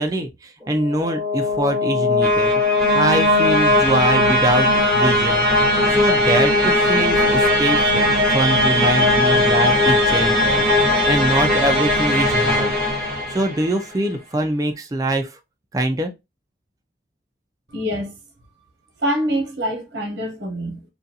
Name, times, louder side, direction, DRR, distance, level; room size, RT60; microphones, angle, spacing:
voice 1, 0.0-2.6 2.9-4.7 4.9-5.5 5.9-10.6 11.1-12.7 13.3-15.4 15.7-16.1, right 1 dB, 20° right, 0.4 m, -23 dB
sound 1, 0.8-13.8, left 1 dB, ahead, 1.3 m, -18 dB
voice 2, 17.7-18.1 19.0-20.8, equal, 75° right, 0.9 m, -25 dB
2.5 x 2.3 x 2.7 m
head